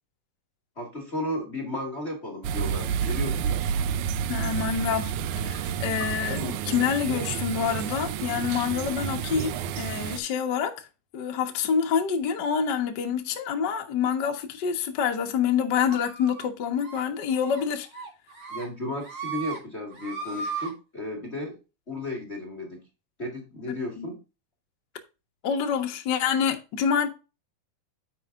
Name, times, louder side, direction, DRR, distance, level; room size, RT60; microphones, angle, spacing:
voice 1, 0.7-3.5 18.5-21.6 21.9-22.9 23.2-24.2, left 1 dB, 30° left, 1.2 m, -34 dB
sound 1, 2.4-10.2, right 8 dB, 85° right, 1.7 m, -30 dB
voice 2, 4.3-5.1 5.4-10.9 11.1-17.9 23.7-24.1 25.4-27.1, left 7 dB, 85° left, 0.9 m, -27 dB
sound 2, 15.9-16.5 16.8-17.0 17.4-17.6 17.9-18.7 19.0-19.6 19.9-20.7, right 5 dB, 40° right, 2.8 m, -36 dB
9.9 x 7.6 x 2.5 m
omnidirectional pair, 4.2 m